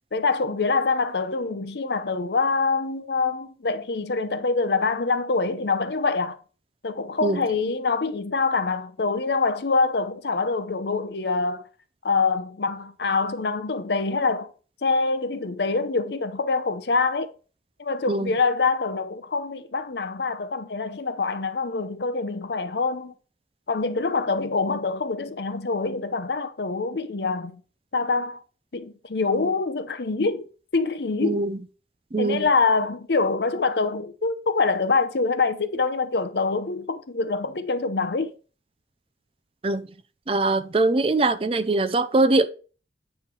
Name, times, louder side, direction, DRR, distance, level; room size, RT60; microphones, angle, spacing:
voice 1, 0.1-6.4 6.8-11.6 12.0-14.5 14.8-17.3 17.8-23.1 23.7-27.6 27.9-28.4 28.7-30.4 30.7-31.4 32.2-38.3, left 4 dB, 70° left, 0.7 m, -25 dB
voice 2, 31.2-31.6 32.1-32.4 39.6-39.9 40.3-42.5, right 2 dB, 30° right, 0.4 m, -22 dB
9.0 x 3.2 x 5.3 m
head